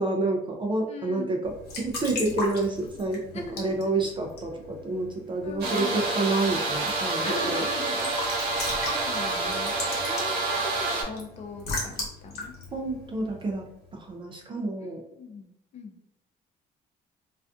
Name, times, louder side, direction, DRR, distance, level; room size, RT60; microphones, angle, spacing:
voice 1, 0.0-3.2 3.6-7.6 12.7-13.6 13.9-15.0, right 2 dB, 30° right, 1 dB, 0.4 m, -29 dB
voice 2, 0.9-1.3 3.3-4.1 5.4-6.0 7.2-8.1 8.5-12.5 14.8-15.5 15.7-15.9, left 4 dB, 40° left, 3 dB, 0.5 m, -40 dB
Raindrop / Drip / Trickle dribble, 1.4-13.9, left 2 dB, 75° left, 1.0 m, -39 dB
sound 1, 5.6-11.0, right 3 dB, 65° right, 0.8 m, -28 dB
2.4 x 2.4 x 2.3 m, 0.82 s
cardioid pair, 110°, 17 cm